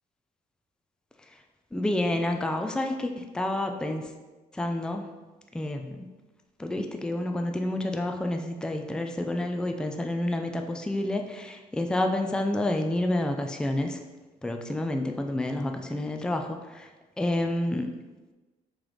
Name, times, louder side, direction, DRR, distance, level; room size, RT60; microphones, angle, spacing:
voice 1, 1.7-4.1 4.5-5.0 5.5-6.1 6.6-14.0 14.4-16.9 17.2-17.9, left 1 dB, 5° left, 5 dB, 0.4 m, -29 dB
3.2 x 3.0 x 3.9 m, 1.2 s
supercardioid pair, 65°, 17 cm